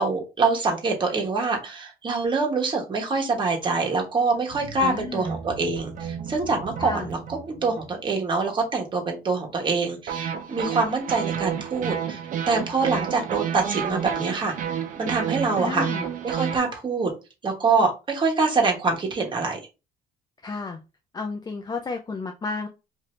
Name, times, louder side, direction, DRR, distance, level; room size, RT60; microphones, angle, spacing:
voice 1, 0.0-7.2 7.5-12.2 12.5-14.5 15.0-15.8 16.2-17.1 17.4-19.6, right 4 dB, 30° right, 1 dB, 1.1 m, -25 dB
sound 1, 4.5-8.3 10.1-16.6, right 8 dB, 50° right, 0.6 m, -31 dB
voice 2, 4.8-5.4 6.8-7.1 15.5-16.1 20.4-20.8 21.1-22.7, left 4 dB, 25° left, 4 dB, 0.4 m, -32 dB
2.7 x 2.6 x 3.1 m, 0.29 s
cardioid pair, 110°, 17 cm